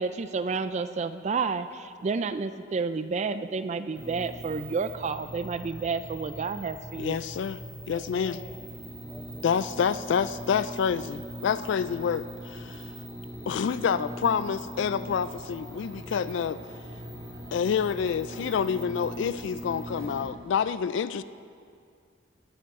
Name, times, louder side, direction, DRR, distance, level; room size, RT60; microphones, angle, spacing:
voice 1, 0.0-7.2, right 4 dB, 35° right, 12 dB, 0.3 m, -30 dB
sound 1, 3.9-20.3, equal, 15° right, 3.3 m, -41 dB
voice 2, 7.0-7.6 7.9-8.4 9.4-12.9 13.5-16.6 17.5-21.2, left 7 dB, 70° left, 14 dB, 0.3 m, -28 dB
voice 3, 7.8-9.6, left 1 dB, 20° left, 5 dB, 0.8 m, -48 dB
20.0 x 8.7 x 3.6 m, 2.3 s
head